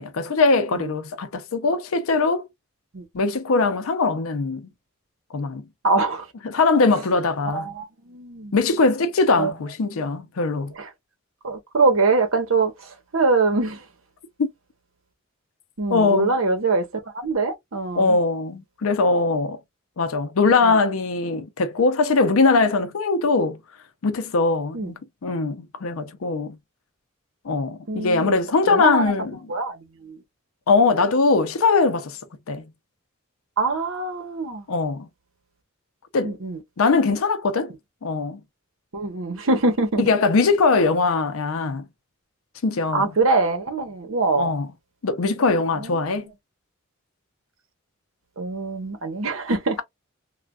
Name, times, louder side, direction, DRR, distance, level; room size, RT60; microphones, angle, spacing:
voice 1, 0.0-2.5 3.1-4.7 5.3-5.7 6.4-7.7 8.5-10.7 14.4-14.5 15.9-16.3 18.0-19.6 20.0-23.6 24.0-26.6 27.4-29.4 30.7-32.2 32.5-32.6 34.7-35.1 36.1-36.4 36.8-37.7 38.0-38.4 40.0-41.9 42.6-43.1 44.4-44.7 45.0-46.3, left 3 dB, 75° left, 0.5 m, -21 dB
voice 2, 5.8-6.3 7.4-8.5 9.4-9.5 10.8-10.9 11.4-13.8 15.8-18.2 20.4-20.8 24.7-24.9 27.9-28.4 28.7-29.1 29.5-30.2 33.6-34.6 36.2-36.6 38.9-40.0 42.9-44.5 45.7-46.2 48.4-49.8, right 3 dB, 70° right, 0.9 m, -24 dB
3.3 x 2.2 x 2.3 m
head